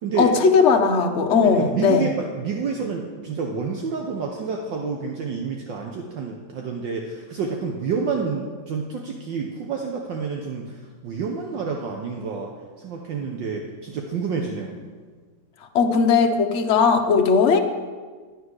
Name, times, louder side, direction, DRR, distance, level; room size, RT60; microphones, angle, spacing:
voice 1, 0.2-2.1 15.7-17.6, left 5 dB, 50° left, 4 dB, 0.9 m, -18 dB
voice 2, 1.4-14.8, right 5 dB, 65° right, 1 dB, 1.6 m, -29 dB
11.5 x 9.6 x 6.3 m, 1.5 s
omnidirectional pair, 2.2 m